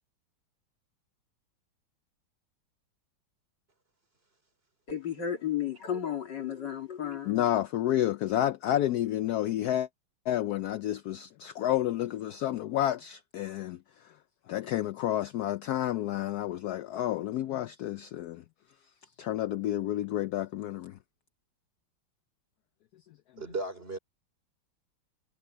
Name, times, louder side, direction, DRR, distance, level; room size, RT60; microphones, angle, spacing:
voice 1, 4.9-7.4, left 9 dB, 60° left, 2.9 m, -33 dB
voice 2, 7.2-9.9 10.3-14.1 14.5-18.4 19.2-21.0, left 12 dB, 90° left, 0.8 m, -30 dB
voice 3, 23.4-24.0, right 2 dB, 30° right, 3.8 m, -35 dB
omnidirectional pair, 2.2 m